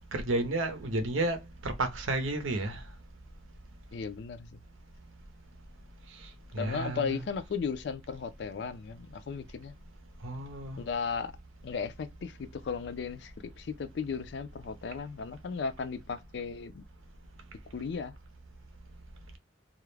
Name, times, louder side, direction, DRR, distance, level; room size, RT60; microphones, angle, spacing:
voice 1, 0.1-2.8 6.5-7.2 10.2-10.8, right 2 dB, 85° right, 0.6 m, -31 dB
voice 2, 3.9-4.6 6.6-9.7 10.8-11.3 11.6-16.8 17.7-18.1, left 5 dB, 60° left, 0.3 m, -36 dB
2.3 x 2.0 x 3.1 m
head